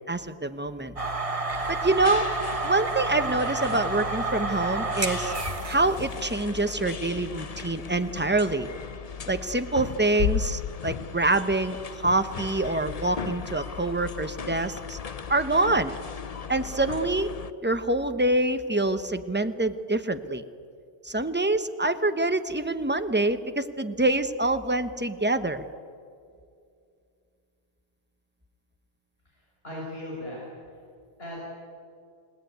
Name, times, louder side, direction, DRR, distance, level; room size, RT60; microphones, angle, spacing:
voice 1, 0.1-0.9 1.7-2.3 2.6-5.3 5.7-8.7 9.3-15.0 15.3-15.9 16.5-17.3 17.6-20.4 21.0-25.6, right 2 dB, 10° right, 9 dB, 0.9 m, -26 dB
sound 1, 1.0-6.1, right 3 dB, 30° right, 1.3 m, -30 dB
sound 2, 1.5-17.5, left 6 dB, 40° left, 0.7 m, -38 dB
Bass drum, 10.2-11.9, left 7 dB, 75° left, 1.2 m, -30 dB
voice 2, 29.3-30.4 31.2-31.4, left 1 dB, 60° left, -4 dB, 6.4 m, -37 dB
29.5 x 19.0 x 9.3 m, 2.4 s
omnidirectional pair, 1.2 m